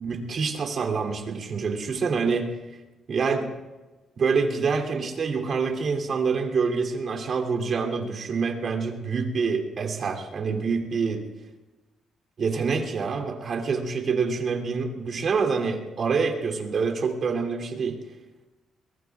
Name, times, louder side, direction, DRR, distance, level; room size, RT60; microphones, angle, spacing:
voice 1, 0.0-2.5 3.1-3.5 4.2-11.2 12.4-18.0, right 5 dB, 55° right, 1 dB, 2.9 m, -26 dB
23.0 x 22.5 x 2.4 m, 1.1 s
cardioid pair, 90°, 0 cm